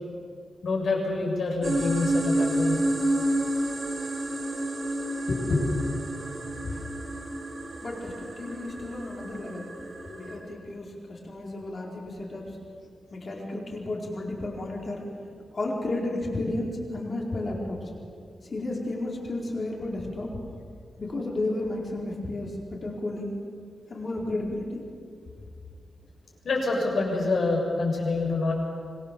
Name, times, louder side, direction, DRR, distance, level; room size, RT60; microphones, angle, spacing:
voice 1, 0.6-2.8 5.3-6.0 10.0-10.5 26.4-28.5, left 3 dB, 60° left, -1 dB, 6.9 m, -27 dB
sound 1, 1.6-10.4, right 1 dB, 45° right, 4.2 m, -30 dB
voice 2, 7.8-9.7 10.1-12.6 13.1-15.2 15.5-17.9 18.4-20.3 21.0-23.3 23.9-24.8, left 2 dB, 40° left, -2 dB, 4.6 m, -32 dB
26.0 x 22.0 x 7.1 m, 2.2 s
wide cardioid pair, 165°, 0 cm